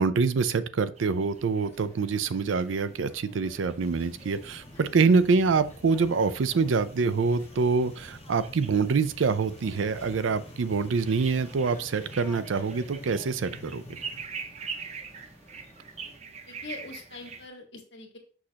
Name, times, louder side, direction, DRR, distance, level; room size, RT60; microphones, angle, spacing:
voice 1, 0.0-13.8, right 4 dB, 85° right, 13 dB, 0.5 m, -25 dB
sound 1, 1.0-17.5, right 5 dB, 35° right, 0.5 m, -45 dB
sound 2, 1.2-16.2, left 1 dB, 15° left, 1.4 m, -52 dB
sound 3, 3.8-14.2, left 2 dB, 35° left, 0.8 m, -48 dB
voice 2, 16.2-18.2, left 3 dB, 65° left, 2 dB, 1.7 m, -43 dB
6.3 x 6.2 x 2.8 m, 0.39 s
head